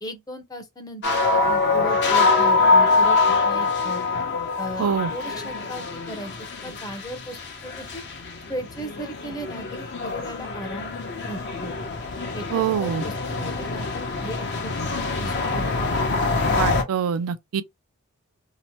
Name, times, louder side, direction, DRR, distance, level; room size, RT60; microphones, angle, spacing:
voice 1, 0.0-3.2 3.4-4.1 4.6-6.3 6.6-8.0 8.5-11.0 11.3-11.8 12.3-15.7, equal, 15° left, 0.6 m, -36 dB
sound 1, 1.0-16.8, left 3 dB, 55° left, 0.8 m, -24 dB
voice 2, 4.8-5.1 12.5-13.0 16.5-17.6, right 8 dB, 75° right, 0.4 m, -24 dB
2.8 x 2.1 x 2.8 m
head